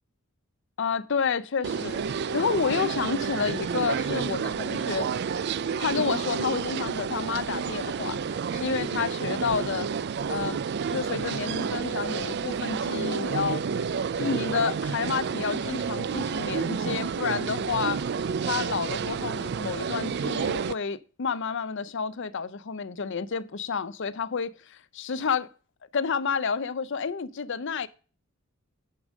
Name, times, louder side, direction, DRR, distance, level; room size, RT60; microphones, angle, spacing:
voice 1, 0.8-2.0 2.3-5.1 5.8-8.2 8.5-9.9 10.3-10.6 10.9-13.6 14.2-18.0 18.5-25.5 25.9-27.9, left 5 dB, 60° left, 0.6 m, -30 dB
sound 1, 1.6-20.7, right 6 dB, 50° right, 0.4 m, -30 dB
9.8 x 5.2 x 6.3 m
head